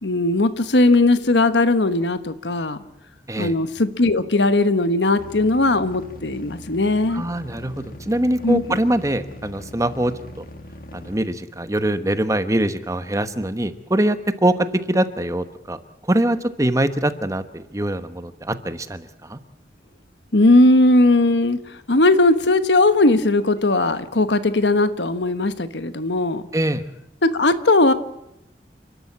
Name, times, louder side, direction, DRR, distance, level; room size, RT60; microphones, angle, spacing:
voice 1, 0.0-2.8 3.4-7.2 8.4-8.6 20.3-21.6 21.9-26.4 27.2-27.9, left 2 dB, 85° left, 11 dB, 1.3 m, -18 dB
sound 1, 5.2-11.2, left 1 dB, 55° left, 2.0 m, -40 dB
voice 2, 7.1-10.5 10.9-14.5 14.9-15.8 16.0-19.4 26.5-26.8, right 1 dB, 20° right, 10 dB, 1.1 m, -23 dB
29.5 x 12.5 x 8.6 m, 0.87 s
head